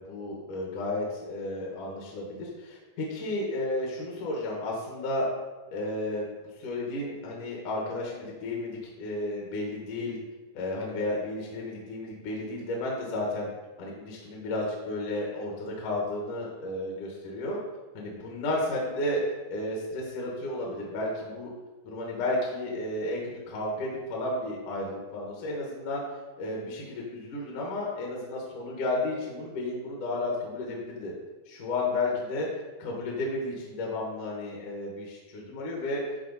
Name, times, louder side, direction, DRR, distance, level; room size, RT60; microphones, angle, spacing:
voice 1, 0.0-5.3 5.7-6.3 6.5-10.2 10.5-13.5 13.8-17.6 17.9-19.2 19.5-21.5 21.8-26.0 26.4-31.1 31.5-32.5 32.8-36.0, left 2 dB, 65° left, -2 dB, 2.6 m, -32 dB
13.0 x 4.6 x 4.1 m, 1.2 s
omnidirectional pair, 4.4 m